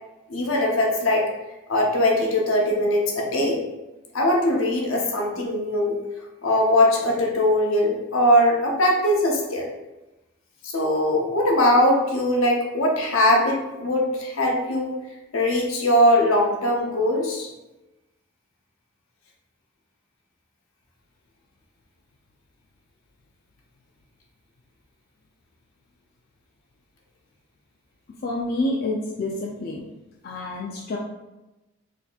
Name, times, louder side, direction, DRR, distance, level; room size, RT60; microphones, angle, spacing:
voice 1, 0.3-1.3 1.7-3.6 4.1-6.0 6.4-9.7 10.6-15.0 15.3-17.5, left 1 dB, 75° left, -1 dB, 0.7 m, -21 dB
voice 2, 28.2-29.8 30.2-31.0, left 2 dB, 45° left, -2 dB, 0.3 m, -28 dB
4.0 x 2.8 x 2.3 m, 1.0 s
head